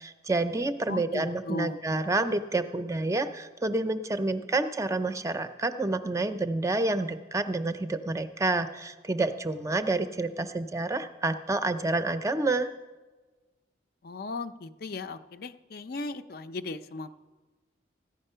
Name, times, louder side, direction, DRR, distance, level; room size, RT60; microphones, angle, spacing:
voice 1, 0.0-12.7, right 2 dB, 15° right, 10 dB, 0.5 m, -29 dB
voice 2, 0.9-1.8 14.0-17.2, left 2 dB, 55° left, 10 dB, 0.5 m, -37 dB
14.0 x 9.7 x 5.6 m, 1.3 s
head